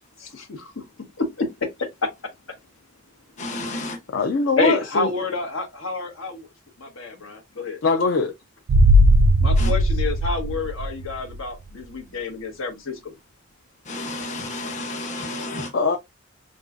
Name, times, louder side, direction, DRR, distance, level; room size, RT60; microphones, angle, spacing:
voice 1, 0.2-0.8 1.2-2.1 4.6-6.5 6.8-7.8 9.4-13.1, left 3 dB, 85° left, 1.2 m, -28 dB
voice 2, 3.4-4.0 9.6-9.7 13.9-15.7, left 2 dB, 35° left, 0.8 m, -31 dB
voice 3, 4.1-5.1 7.8-8.3 15.7-16.0, left 3 dB, 65° left, 0.4 m, -21 dB
sound 1, 8.7-11.4 11.7-11.8, equal, 85° right, 0.4 m, -18 dB
5.2 x 2.4 x 2.4 m
head